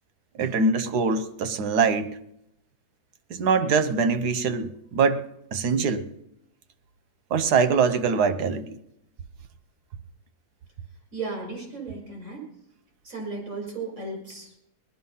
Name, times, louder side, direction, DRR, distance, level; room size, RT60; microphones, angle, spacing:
voice 1, 0.4-2.2 3.3-6.1 7.3-8.8, right 5 dB, 80° right, 1.5 m, -23 dB
voice 2, 11.1-12.5 13.0-14.6, right 3 dB, 55° right, 5.8 m, -35 dB
19.5 x 12.5 x 5.6 m
omnidirectional pair, 1.7 m